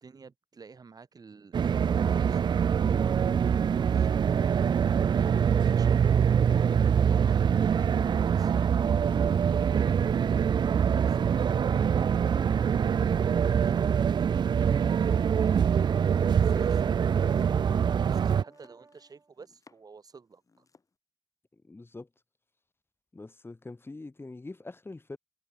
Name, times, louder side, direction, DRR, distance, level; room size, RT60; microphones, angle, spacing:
voice 1, 0.0-3.1 3.4-6.2 6.6-8.5 17.7-20.7, right 5 dB, 60° right, 1.8 m, -52 dB
sound 1, 1.5-18.4, right 7 dB, 85° right, 0.4 m, -24 dB
voice 2, 8.9-9.3 21.5-22.1 23.1-25.2, left 2 dB, 30° left, 3.5 m, -44 dB
Brass instrument, 15.1-19.3, right 3 dB, 40° right, 4.0 m, -54 dB
Domestic sounds home sounds, 15.2-20.0 20.3-20.9, left 4 dB, 50° left, 6.4 m, -61 dB
wide cardioid pair, 95°, 8 cm